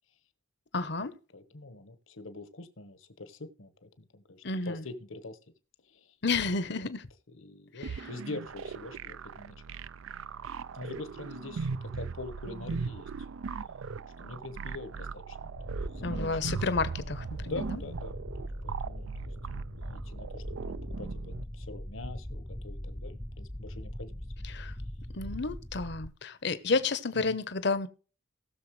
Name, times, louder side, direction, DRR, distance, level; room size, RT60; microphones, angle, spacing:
voice 1, 0.7-1.2 4.4-4.9 6.2-7.1 7.7-8.1 16.0-17.8 24.4-24.8 25.1-27.9, left 3 dB, 55° left, 0.8 m, -31 dB
voice 2, 1.3-5.4 5.8-6.2 6.5-6.9 7.3-9.5 10.7-13.1 14.2-16.5 17.4-24.5 27.1-27.4, left 2 dB, 80° left, 1.3 m, -44 dB
sound 1, 7.8-21.4, right 5 dB, 80° right, 0.4 m, -39 dB
sound 2, 15.6-26.1, left 1 dB, 5° left, 0.5 m, -41 dB
19.0 x 6.7 x 3.2 m
head